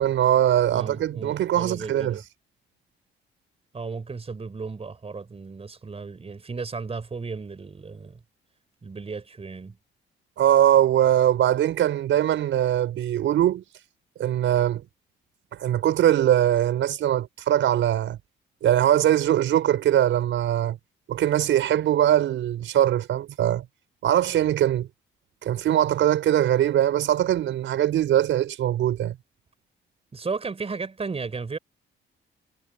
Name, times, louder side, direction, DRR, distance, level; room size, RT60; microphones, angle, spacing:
voice 1, 0.0-2.2 10.4-13.6 14.2-14.8 15.6-18.2 18.6-20.8 21.1-23.6 24.0-24.9 25.4-29.2, right 11 dB, 75° right, 5.4 m, -21 dB
voice 2, 0.7-2.2 3.7-8.2 8.8-9.8 30.1-31.6, right 4 dB, 30° right, 4.3 m, -34 dB
cardioid pair, 90°, 20 cm